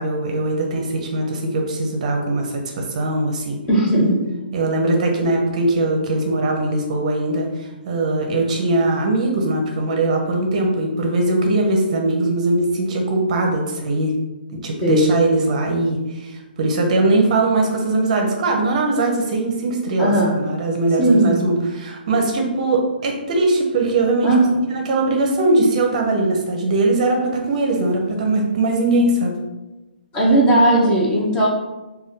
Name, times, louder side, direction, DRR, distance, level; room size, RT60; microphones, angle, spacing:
voice 1, 0.0-3.6 4.5-14.1 14.5-24.3 24.7-29.3, right 2 dB, 40° right, 1 dB, 0.5 m, -20 dB
voice 2, 3.7-4.2 14.8-15.1 20.0-20.4 21.0-21.4 24.2-24.6 30.1-31.5, right 1 dB, 15° left, -4 dB, 0.5 m, -16 dB
2.6 x 2.2 x 3.5 m, 1.1 s
hypercardioid pair, 155°, 6 cm